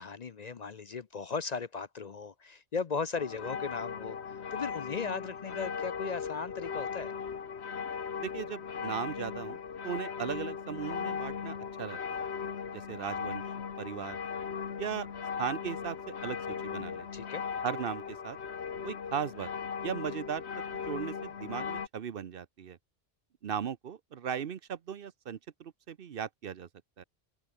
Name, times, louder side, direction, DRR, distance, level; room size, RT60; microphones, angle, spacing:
voice 1, 0.0-7.1 17.1-17.4, left 5 dB, 45° left, 0.7 m, -37 dB
sound 1, 3.1-21.9, left 6 dB, 90° left, 1.6 m, -38 dB
voice 2, 8.2-9.6 9.8-12.2 12.7-13.4 13.8-14.2 14.8-15.1 15.4-16.0 16.2-17.1 17.6-18.4 18.8-19.5 19.8-20.4 20.9-22.8 23.4-26.7 27.0-27.1, right 8 dB, 65° right, 0.9 m, -37 dB
open air
omnidirectional pair, 1.1 m